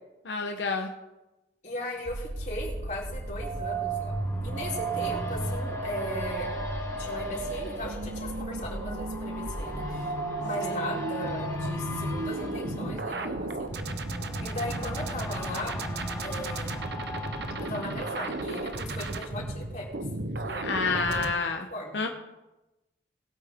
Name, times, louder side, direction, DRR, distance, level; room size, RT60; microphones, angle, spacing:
voice 1, 0.2-0.9 10.6-10.8 20.6-21.6 21.9-22.1, left 4 dB, 90° left, 3 dB, 1.0 m, -29 dB
voice 2, 1.6-4.1 4.4-6.6 7.0-10.1 10.4-13.7 14.4-15.8 16.2-16.9 17.6-19.9 20.4-21.3 21.7-22.1, left 1 dB, 45° left, -4 dB, 3.7 m, -37 dB
sound 1, 1.8-19.6 20.0-20.1, left 2 dB, 20° left, 1.7 m, -42 dB
sound 2, 2.1-21.3, right 2 dB, 70° right, 0.9 m, -34 dB
20.5 x 8.6 x 3.7 m, 1.0 s
head